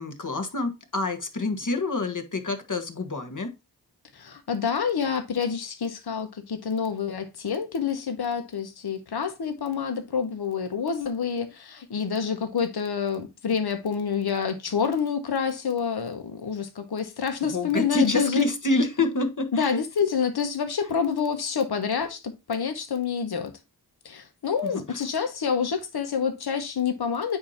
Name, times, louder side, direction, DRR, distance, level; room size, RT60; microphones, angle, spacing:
voice 1, 0.0-3.5 17.5-19.8 24.6-24.8, left 2 dB, 50° left, 1.6 m, -27 dB
voice 2, 4.1-18.4 19.5-22.2 22.5-23.5 24.0-27.4, left 6 dB, 70° left, 1.3 m, -27 dB
8.6 x 2.9 x 5.8 m
cardioid pair, 40°, 40 cm